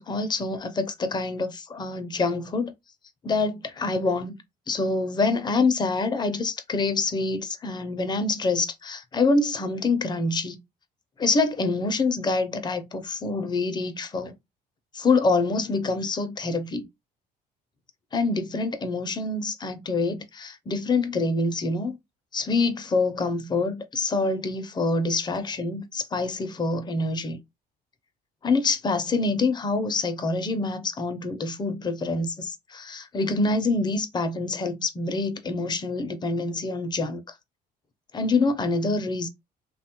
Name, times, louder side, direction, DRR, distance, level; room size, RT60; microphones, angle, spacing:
voice 1, 0.0-2.7 3.2-4.4 4.7-10.6 11.2-14.3 14.9-16.9 18.1-22.0 22.3-27.4 28.4-37.3 38.1-39.3, left 3 dB, 25° left, 0.5 m, -26 dB
2.9 x 2.1 x 2.8 m
cardioid pair, 110°, 17 cm